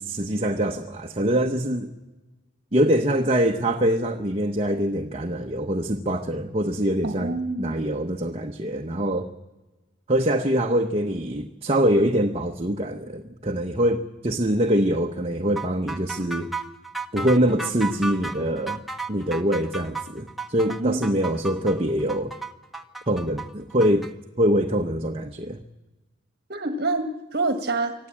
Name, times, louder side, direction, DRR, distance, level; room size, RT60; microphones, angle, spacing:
voice 1, 0.0-1.9 2.7-9.3 10.1-16.5 17.1-18.8 19.1-22.3 23.1-24.1 24.4-25.6, equal, 30° right, 3 dB, 0.9 m, -24 dB
voice 2, 7.0-7.8 20.7-21.1 26.5-27.9, right 2 dB, 55° right, 7 dB, 1.6 m, -27 dB
sound 1, 15.6-24.1, right 3 dB, ahead, 1.0 m, -34 dB
25.0 x 15.0 x 8.6 m, 1.1 s
head